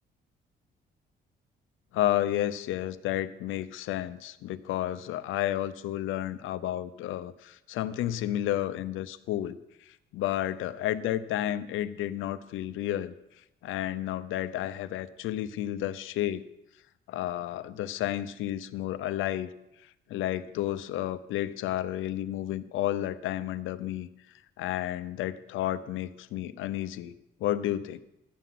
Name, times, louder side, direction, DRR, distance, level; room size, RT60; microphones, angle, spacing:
voice 1, 1.9-9.6 9.9-13.1 13.6-16.4 17.1-19.5 20.1-24.1 24.6-27.1 27.4-28.0, left 13 dB, 90° left, 13 dB, 0.7 m, -31 dB
12.0 x 6.0 x 9.3 m, 0.86 s
cardioid pair, 90°, 20 cm